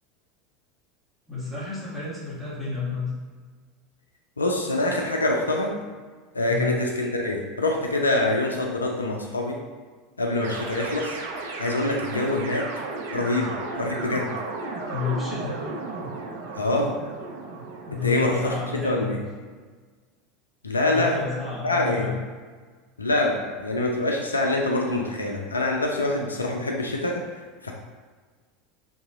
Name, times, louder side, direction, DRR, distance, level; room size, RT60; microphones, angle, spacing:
voice 1, 1.3-3.1 6.4-6.7 14.9-15.6 17.9-19.1 20.8-22.1, left 4 dB, ahead, -9 dB, 1.4 m, -30 dB
voice 2, 4.4-5.7 6.3-9.6 10.2-11.2 11.6-12.7 13.1-14.3 16.5-16.9 17.9-18.5 18.8-19.2 20.6-21.2 21.6-22.1 23.0-27.3 27.6-27.7, left 2 dB, 80° left, 1 dB, 0.3 m, -25 dB
sound 1, 10.4-18.5, right 3 dB, 60° right, 0.4 m, -34 dB
2.8 x 2.6 x 3.6 m, 1.5 s
figure-of-eight pair, 75°, 0 cm